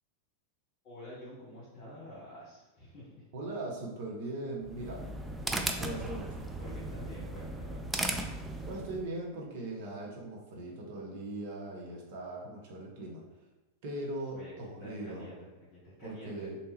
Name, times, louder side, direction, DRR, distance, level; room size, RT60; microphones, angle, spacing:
voice 1, 0.8-3.2 6.6-8.0 14.3-14.5 14.8-16.5, left 1 dB, 40° left, -8 dB, 1.3 m, -48 dB
voice 2, 3.3-5.0 5.8-6.5 8.7-13.2 13.8-15.3 16.0-16.6, right 2 dB, 50° right, -2 dB, 0.8 m, -40 dB
sound 1, 4.6-9.1, right 2 dB, 10° right, 0.3 m, -36 dB
3.3 x 2.7 x 3.1 m, 1.1 s
figure-of-eight pair, 90°, 0 cm